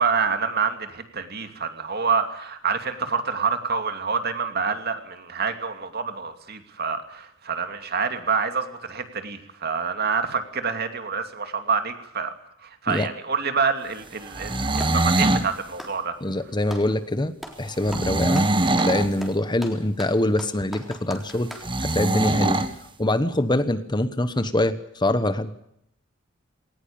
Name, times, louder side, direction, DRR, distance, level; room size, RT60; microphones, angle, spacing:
voice 1, 0.0-12.3 12.8-16.1, right 5 dB, 50° right, 7 dB, 2.6 m, -27 dB
sound 1, 14.3-15.5 17.9-19.1 21.6-22.7, right 2 dB, 25° right, 1.5 m, -22 dB
Clapping, 14.8-15.1 15.7-16.9 17.4-17.6 17.9-21.7, equal, ahead, 3.7 m, -40 dB
voice 2, 16.2-17.3 17.6-21.5 21.8-22.6 23.0-25.5, left 1 dB, 20° left, 12 dB, 1.1 m, -24 dB
20.0 x 19.0 x 8.7 m, 0.75 s
head